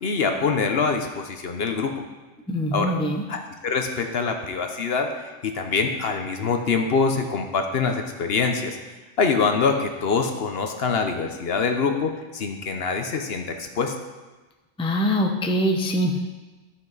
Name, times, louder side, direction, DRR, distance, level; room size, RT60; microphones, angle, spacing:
voice 1, 0.0-1.9 2.7-2.9 3.3-8.8 9.2-13.9, left 5 dB, 60° left, 5 dB, 1.0 m, -24 dB
voice 2, 2.5-3.2 14.8-16.2, equal, 5° left, 2 dB, 0.6 m, -23 dB
13.0 x 5.8 x 4.0 m, 1.2 s
omnidirectional pair, 1.2 m